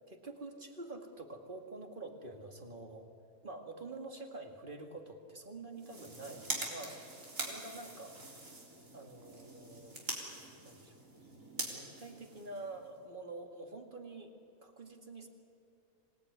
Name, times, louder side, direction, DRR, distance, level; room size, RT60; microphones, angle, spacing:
voice 1, 0.1-3.1 3.4-7.0 7.4-8.2 8.9-10.1 10.6-11.0 11.7-14.3 14.6-15.3, right 2 dB, 35° right, 4 dB, 2.3 m, -47 dB
sound 1, 5.7-13.0, right 2 dB, 60° right, 4.1 m, -44 dB
26.5 x 18.5 x 9.7 m, 2.5 s
omnidirectional pair, 1.5 m